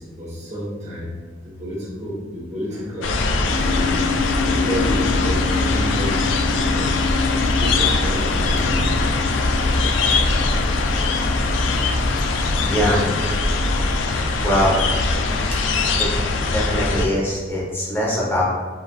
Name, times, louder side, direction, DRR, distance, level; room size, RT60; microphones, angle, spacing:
voice 1, 0.0-3.2 3.7-7.0 7.4-9.1, equal, 40° right, -8 dB, 1.0 m, -30 dB
sound 1, 3.0-17.1, left 3 dB, 90° left, 0.3 m, -21 dB
sound 2, 3.5-16.9, left 4 dB, 75° right, 0.9 m, -29 dB
voice 2, 12.5-13.1 14.4-14.8 15.5-16.1 16.5-18.4, equal, 15° left, -6 dB, 0.8 m, -22 dB
3.9 x 2.4 x 2.4 m, 1.5 s
head